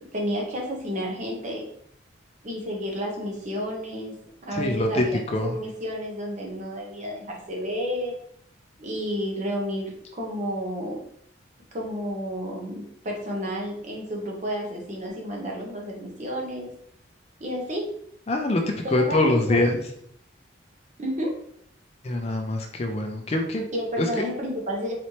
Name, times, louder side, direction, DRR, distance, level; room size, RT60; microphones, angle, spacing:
voice 1, 0.0-1.6 2.4-4.2 4.4-5.2 5.5-8.1 8.8-11.0 11.7-16.7 17.4-18.0 18.8-19.6 21.0-21.4 23.7-24.9, equal, 35° right, -1 dB, 0.9 m, -31 dB
voice 2, 4.5-5.5 18.3-19.8 22.0-23.7 24.0-24.1, left 2 dB, 30° left, 3 dB, 0.4 m, -24 dB
4.1 x 3.1 x 2.8 m, 0.68 s
head